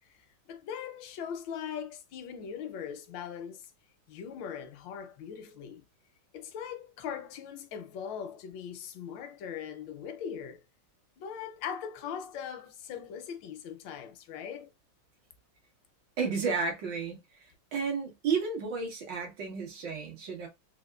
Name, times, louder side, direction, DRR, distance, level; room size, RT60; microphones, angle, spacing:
voice 1, 0.5-3.7 4.1-5.8 6.3-10.6 11.2-14.7, left 8 dB, 85° left, 1.3 m, -40 dB
voice 2, 16.2-17.2 17.7-20.5, right 5 dB, 70° right, 1.8 m, -32 dB
4.1 x 2.4 x 2.2 m
omnidirectional pair, 2.0 m